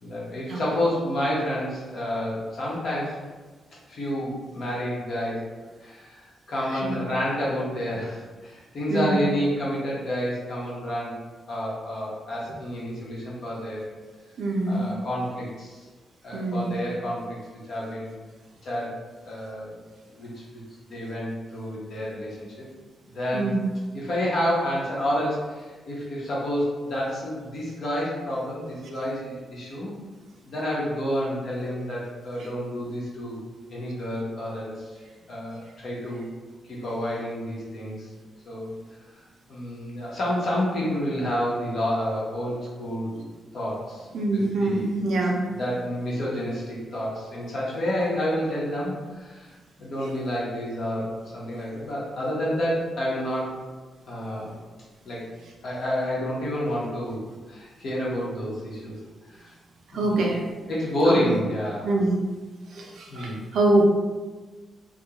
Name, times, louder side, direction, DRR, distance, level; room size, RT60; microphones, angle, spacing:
voice 1, 0.0-3.2 3.9-5.4 5.8-11.1 11.5-13.9 14.7-15.9 16.2-17.4 17.7-18.1 18.6-19.0 19.2-19.8 20.2-20.6 20.9-22.7 23.0-23.5 23.9-29.9 30.5-33.4 33.7-34.9 35.3-36.3 36.6-38.1 38.4-38.7 39.5-43.2 43.5-44.9 45.5-49.5 49.8-53.5 54.1-54.5 55.0-55.2 55.6-58.9 59.3-59.5 59.9-60.3 60.7-61.9 63.1-63.4, equal, 60° left, -6 dB, 0.9 m, -29 dB
voice 2, 8.9-9.2 14.4-14.9 16.3-16.8 23.3-23.6 44.1-45.4 59.9-60.4 61.1-61.3 61.8-62.1 62.7-63.9, right 2 dB, 65° right, -1 dB, 0.5 m, -24 dB
2.4 x 2.3 x 2.9 m, 1.3 s
cardioid pair, 125°, 0 cm